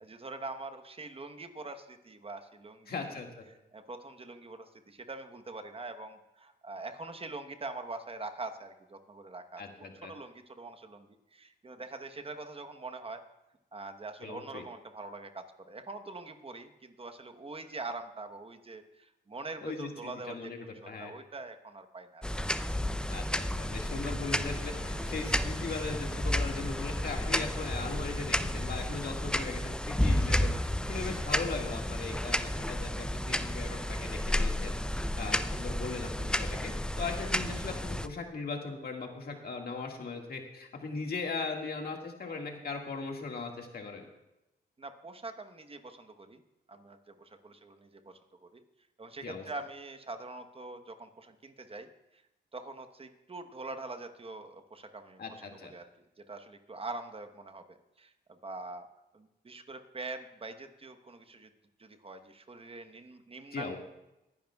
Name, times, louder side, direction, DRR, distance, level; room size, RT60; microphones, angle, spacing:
voice 1, 0.0-3.2 3.7-9.6 10.0-13.2 13.7-22.3 31.2-31.3 44.8-46.4 46.7-48.6 49.0-52.2 52.5-58.9 59.1-61.5 61.8-63.8, right 3 dB, 30° right, 7 dB, 1.1 m, -44 dB
voice 2, 2.9-3.4 9.6-10.1 14.2-14.6 19.6-21.1 23.1-44.1 49.2-49.4 55.2-55.7 63.5-63.8, left 4 dB, 60° left, 2 dB, 1.9 m, -39 dB
sound 1, 22.2-38.1, left 1 dB, 5° left, 0.5 m, -32 dB
sound 2, 23.9-29.1, left 6 dB, 85° left, 1.0 m, -51 dB
20.5 x 10.5 x 2.3 m, 0.94 s
cardioid pair, 80°, 18 cm